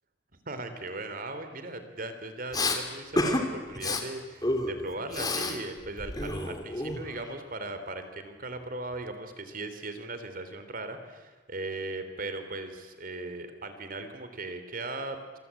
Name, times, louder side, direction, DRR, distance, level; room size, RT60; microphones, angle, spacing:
voice 1, 0.4-15.4, right 2 dB, 50° right, 9 dB, 3.3 m, -38 dB
Respiratory sounds, 2.5-2.8 3.2-3.4 3.7-4.0 4.4-5.6 5.8-7.3, left 2 dB, 20° left, 2.9 m, -29 dB
26.5 x 24.5 x 8.4 m, 1.3 s
head